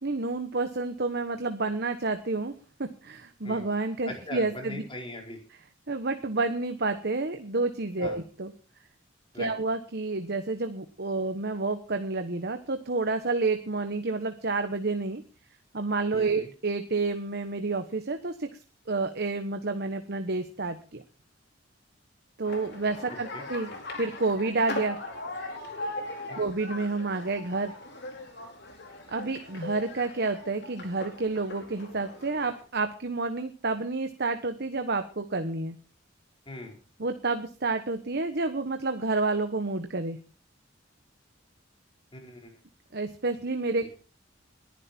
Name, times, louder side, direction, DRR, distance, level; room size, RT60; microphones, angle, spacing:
voice 1, 0.0-2.5 3.0-4.8 5.5-5.6 5.9-8.5 9.3-15.2 15.7-18.5 18.9-21.0 22.4-23.7 24.0-25.0 26.4-27.7 29.1-35.8 37.0-40.2 42.9-43.9, right 3 dB, 55° right, 7 dB, 1.2 m, -29 dB
voice 2, 4.1-5.4 8.0-8.2 9.3-9.5 16.1-16.5 23.3-23.4 36.5-36.8 42.1-42.5 43.8-43.9, left 2 dB, 25° left, 2 dB, 4.5 m, -40 dB
sound 1, 22.4-32.6, left 2 dB, 60° left, 4.4 m, -40 dB
21.0 x 11.0 x 4.5 m, 0.37 s
head